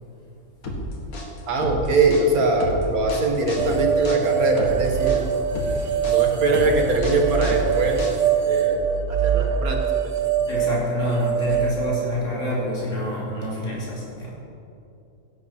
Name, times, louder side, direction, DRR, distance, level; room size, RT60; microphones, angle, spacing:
sound 1, 0.6-8.5, equal, 75° left, 2.2 m, -31 dB
voice 1, 1.5-5.2 6.0-8.0 8.5-8.8 9.1-9.8 10.0-10.1, right 3 dB, 80° right, 2 dB, 2.1 m, -22 dB
sound 2, 3.6-11.8, right 8 dB, 60° right, 1.3 m, -23 dB
voice 2, 10.4-14.3, left 1 dB, 60° left, -6 dB, 3.4 m, -27 dB
16.5 x 11.5 x 4.4 m, 2.7 s
omnidirectional pair, 1.5 m